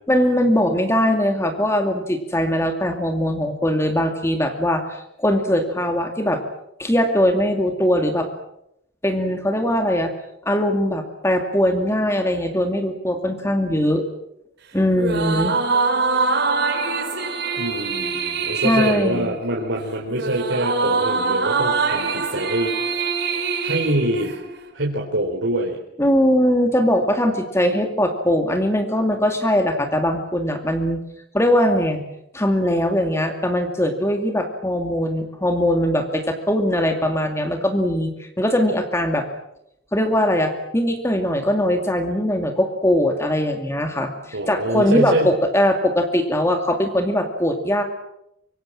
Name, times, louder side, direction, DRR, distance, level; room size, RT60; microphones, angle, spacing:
voice 1, 0.1-6.4 6.8-8.3 9.0-10.1 10.4-14.0 14.7-15.5 18.5-19.3 26.0-31.0 31.3-32.0 32.3-39.3 39.9-47.8, equal, 15° left, 5 dB, 2.3 m, -21 dB
sound 1, 14.9-24.7, right 4 dB, 60° right, 4.7 m, -24 dB
voice 2, 17.6-22.8 23.6-24.3 24.7-25.8 44.3-45.3, right 1 dB, 80° right, -1 dB, 4.2 m, -24 dB
25.5 x 23.5 x 7.6 m, 0.80 s
head